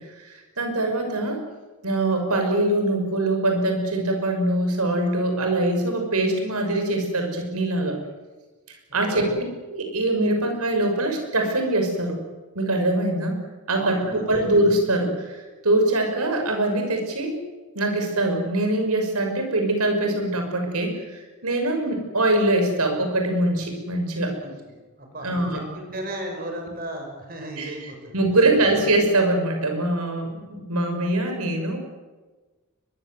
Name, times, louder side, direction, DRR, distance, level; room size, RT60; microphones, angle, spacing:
voice 1, 0.2-1.4 1.8-8.0 8.7-9.3 9.7-12.2 12.5-13.4 13.7-17.4 17.7-24.4 25.2-25.6 27.6-31.8, right 1 dB, 90° right, 4 dB, 6.0 m, -23 dB
voice 2, 8.9-9.4 13.8-14.5 24.4-24.5 25.0-28.2, right 1 dB, 40° right, 3 dB, 5.8 m, -35 dB
22.5 x 22.0 x 7.8 m, 1.3 s
head